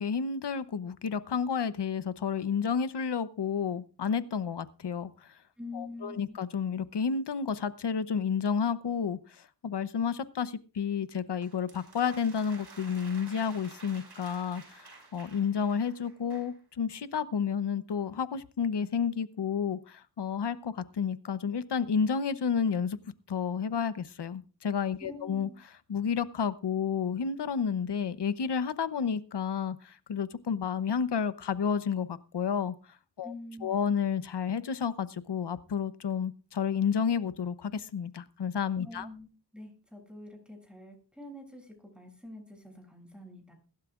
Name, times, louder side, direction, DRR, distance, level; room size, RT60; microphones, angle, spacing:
voice 1, 0.0-5.3 5.7-23.0 23.3-25.5 25.9-32.7 33.2-33.3 33.6-39.1, left 6 dB, 75° left, 13 dB, 0.9 m, -31 dB
voice 2, 5.6-6.4 25.0-25.6 33.2-33.8 38.8-39.3 39.5-43.5, left 1 dB, ahead, 2 dB, 7.5 m, -46 dB
sound 1, 11.4-16.6, right 4 dB, 70° right, 6.0 m, -52 dB
22.0 x 12.0 x 2.5 m, 0.35 s
cardioid pair, 60°, 41 cm